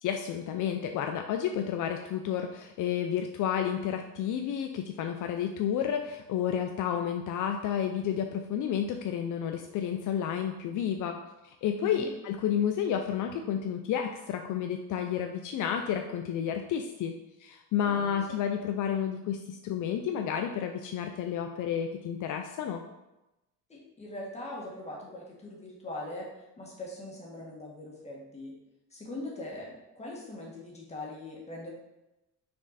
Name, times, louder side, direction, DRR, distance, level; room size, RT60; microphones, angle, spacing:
voice 1, 0.0-22.8, left 8 dB, 65° left, 5 dB, 0.5 m, -31 dB
voice 2, 11.8-12.1 17.8-18.3 23.7-26.3 26.6-28.5 28.9-31.7, left 2 dB, 20° left, -3 dB, 1.8 m, -41 dB
6.0 x 4.5 x 4.1 m, 0.96 s
cardioid pair, 145°, 33 cm